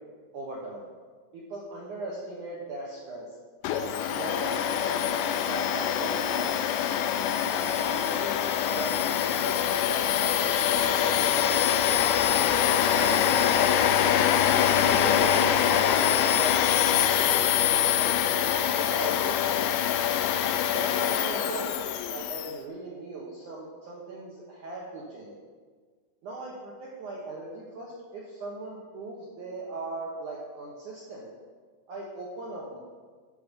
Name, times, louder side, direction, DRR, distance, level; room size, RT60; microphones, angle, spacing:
voice 1, 0.3-0.9 1.3-3.3 3.8-6.8 7.5-12.0 12.6-13.7 14.8-19.7 20.7-21.8 22.1-25.4 26.2-31.3 31.9-32.8, right 2 dB, 85° right, -4 dB, 1.7 m, -38 dB
Domestic sounds home sounds, 3.6-22.5, left 10 dB, 85° left, 2.6 m, -24 dB
12.5 x 6.9 x 5.3 m, 1.5 s
omnidirectional pair, 5.6 m